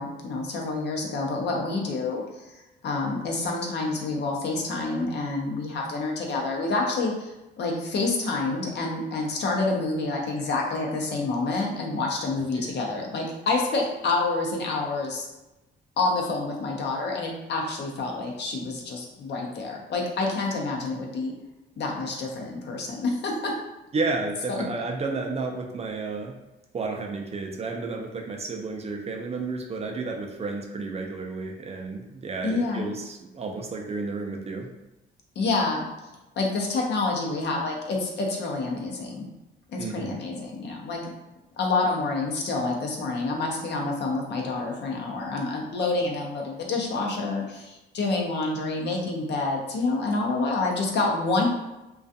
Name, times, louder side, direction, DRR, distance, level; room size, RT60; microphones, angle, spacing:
voice 1, 0.0-2.2 2.5-15.3 16.0-21.3 21.8-23.5 24.5-24.6 32.4-32.9 35.4-35.8 36.4-39.3 39.7-41.1 41.6-51.5, left 3 dB, 60° left, 0 dB, 0.6 m, -28 dB
voice 2, 23.9-26.4 26.7-34.7 39.8-40.2, right 3 dB, 30° right, 2 dB, 0.4 m, -32 dB
2.3 x 2.3 x 2.6 m, 0.98 s
cardioid pair, 90°, 20 cm